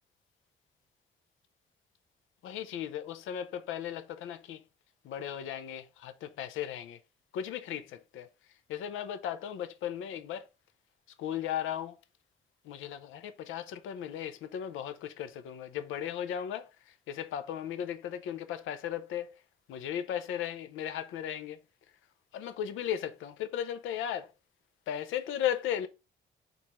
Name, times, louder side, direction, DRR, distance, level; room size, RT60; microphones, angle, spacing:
voice 1, 2.4-4.6 5.0-7.0 7.3-8.3 8.7-10.4 11.2-12.0 12.7-16.7 17.1-19.3 19.7-21.6 22.3-24.3 24.9-25.9, left 10 dB, 80° left, 0.6 m, -36 dB
4.5 x 2.6 x 4.1 m
cardioid pair, 90°, 20 cm